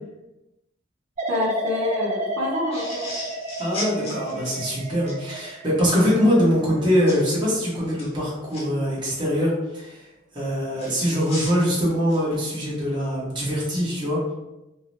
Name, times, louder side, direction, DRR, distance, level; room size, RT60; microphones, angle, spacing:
sound 1, 1.2-8.1 8.5-9.0, equal, 40° right, 0.3 m, -32 dB
voice 1, 1.3-3.1 3.8-4.4, left 1 dB, 70° right, -4 dB, 0.7 m, -28 dB
sound 2, 2.7-5.2 7.1-7.3 7.8-8.6 10.8-12.6, left 1 dB, 30° left, 0.6 m, -36 dB
voice 2, 3.6-10.0 10.3-14.2, equal, 25° right, -7 dB, 0.8 m, -23 dB
2.6 x 2.0 x 3.0 m, 0.96 s
head